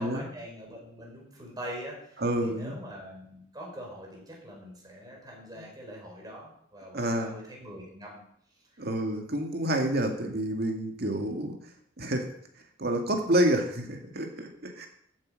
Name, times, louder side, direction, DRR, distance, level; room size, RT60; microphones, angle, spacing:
voice 1, 0.0-8.2 8.8-8.9, equal, 20° right, -1 dB, 4.3 m, -43 dB
voice 2, 2.2-2.8 5.6-5.7 6.9-7.3 8.8-11.5 12.0-12.2 12.8-14.9, right 1 dB, 55° right, 3 dB, 2.1 m, -28 dB
14.0 x 7.9 x 5.3 m, 0.68 s
head